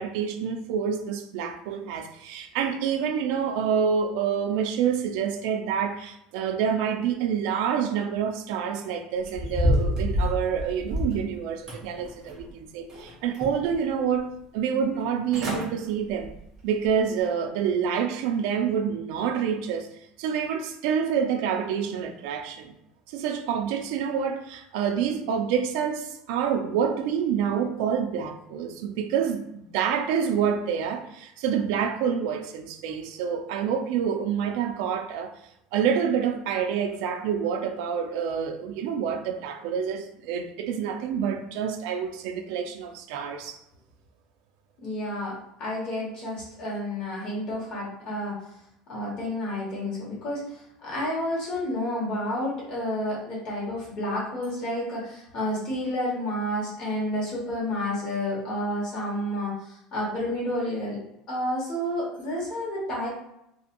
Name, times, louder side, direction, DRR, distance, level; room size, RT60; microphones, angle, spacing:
voice 1, 0.0-16.3 16.6-19.9 20.2-22.7 23.1-35.3 35.7-43.6, right 7 dB, 70° right, 0.3 m, -27 dB
sound 1, 9.2-11.2 11.7-12.5 12.9-13.7 14.2-14.3 15.0-15.1 15.3-15.7 16.1-16.4 16.9-17.0, left 1 dB, 25° right, 0.8 m, -28 dB
voice 2, 44.8-48.4 48.9-61.0 61.3-63.1, left 1 dB, 35° left, 1.3 m, -30 dB
2.7 x 2.6 x 2.5 m
cardioid pair, 175°, 2 cm